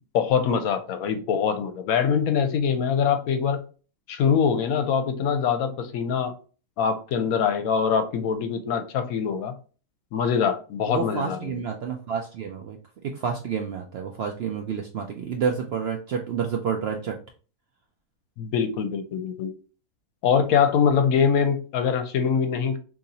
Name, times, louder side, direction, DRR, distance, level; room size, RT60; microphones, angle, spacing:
voice 1, 0.0-3.6 4.1-6.3 6.8-9.5 10.1-11.5 18.4-19.5 20.2-22.8, left 7 dB, 75° left, 1.0 m, -23 dB
voice 2, 10.9-12.8 13.0-17.1, right 6 dB, 75° right, 0.5 m, -29 dB
3.9 x 2.8 x 2.8 m
omnidirectional pair, 1.6 m